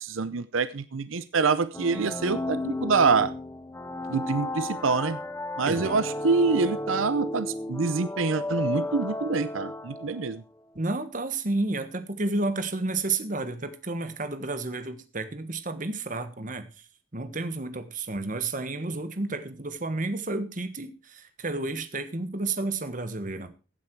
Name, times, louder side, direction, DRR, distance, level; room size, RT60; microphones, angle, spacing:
voice 1, 0.0-3.3 4.1-5.2 5.6-10.4, right 4 dB, 85° right, 14 dB, 0.7 m, -26 dB
sound 1, 1.7-10.4, left 1 dB, 10° left, 0.7 m, -33 dB
voice 2, 5.6-6.0 10.7-16.7 17.1-23.5, right 2 dB, 40° right, 10 dB, 1.4 m, -31 dB
15.5 x 8.5 x 4.7 m, 0.34 s
head